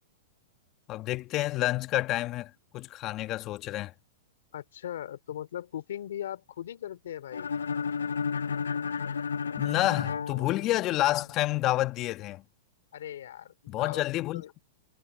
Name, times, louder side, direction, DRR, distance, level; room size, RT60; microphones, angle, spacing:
voice 1, 0.9-3.9 9.6-12.4 13.7-14.4, left 16 dB, 35° left, 1.6 m, -29 dB
voice 2, 4.5-7.5 12.9-14.0 14.3-14.5, left 11 dB, 75° left, 2.9 m, -39 dB
sound 1, 7.3-11.2, left 6 dB, 90° left, 0.7 m, -32 dB
hypercardioid pair, 120°, 0 cm